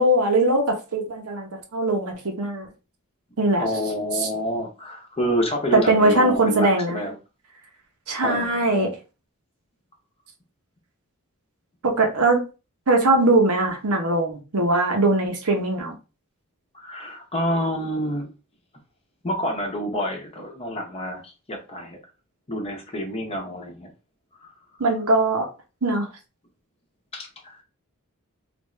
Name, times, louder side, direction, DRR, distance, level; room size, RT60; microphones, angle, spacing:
voice 1, 0.0-2.7 3.4-3.7 4.2-4.3 5.7-7.0 8.1-8.9 11.8-12.4 12.9-15.9 24.8-25.5 25.8-26.1, right 2 dB, 70° right, 0.8 m, -21 dB
voice 2, 3.6-7.1 8.2-9.0 16.7-18.3 19.2-22.0 22.5-23.9 24.4-24.5 27.1-27.6, equal, 25° left, 0.8 m, -28 dB
3.4 x 2.5 x 3.2 m
head